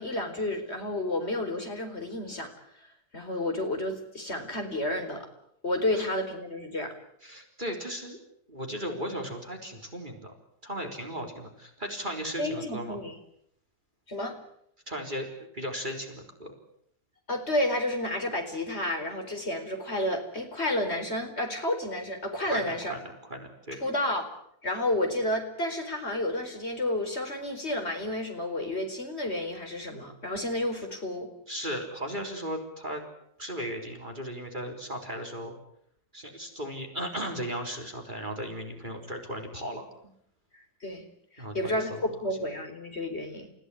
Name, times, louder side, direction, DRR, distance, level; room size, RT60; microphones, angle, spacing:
voice 1, 0.0-2.5 3.1-5.3 5.6-6.9 12.4-13.1 14.1-14.4 17.3-22.9 23.8-24.3 24.6-31.3 40.8-41.0 41.3-41.9 42.2-43.5, left 1 dB, 40° left, 5 dB, 4.8 m, -31 dB
voice 2, 7.2-8.2 8.5-10.3 10.6-13.0 14.9-15.3 15.5-16.5 22.5-23.8 31.5-33.0 33.4-35.5 36.1-39.9 41.4-42.0, equal, 30° right, 2 dB, 4.0 m, -36 dB
30.0 x 16.5 x 9.9 m, 0.72 s
omnidirectional pair, 1.7 m